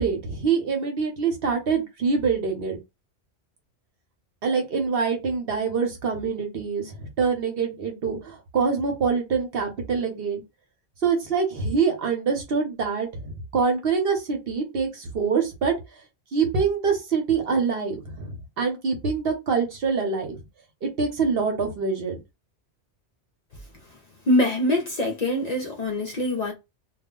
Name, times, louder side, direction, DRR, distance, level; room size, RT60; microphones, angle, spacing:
voice 1, 0.0-2.8 4.4-10.4 11.0-15.7 16.3-20.4 20.8-22.2, right 5 dB, 60° right, 1.0 m, -25 dB
voice 2, 24.3-26.5, left 1 dB, 50° left, 0.6 m, -23 dB
2.4 x 2.1 x 3.6 m
omnidirectional pair, 1.1 m